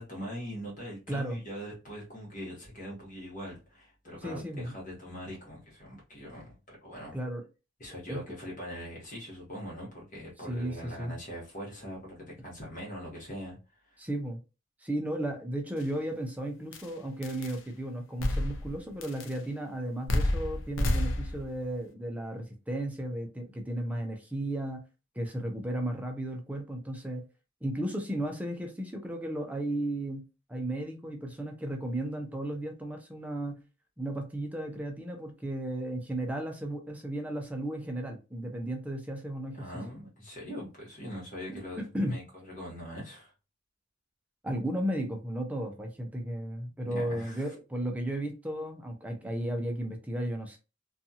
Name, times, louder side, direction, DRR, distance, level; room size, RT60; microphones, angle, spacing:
voice 1, 0.0-7.2 7.8-13.6 13.9-14.0 39.5-43.3 46.8-47.5, equal, 40° left, 1.2 m, -42 dB
voice 2, 1.1-1.4 4.2-4.7 7.1-7.4 8.1-8.2 10.5-11.1 14.0-14.4 14.8-24.8 25.2-27.2 27.6-30.2 30.5-33.6 34.0-39.7 41.5-42.2 44.4-50.6, right 1 dB, 10° right, 0.5 m, -34 dB
sound 1, 15.8-15.9 16.7-16.9 17.2-17.6 18.2-18.8 19.0-19.4 20.1-21.5, left 1 dB, 70° left, 0.5 m, -29 dB
2.6 x 2.4 x 2.7 m
head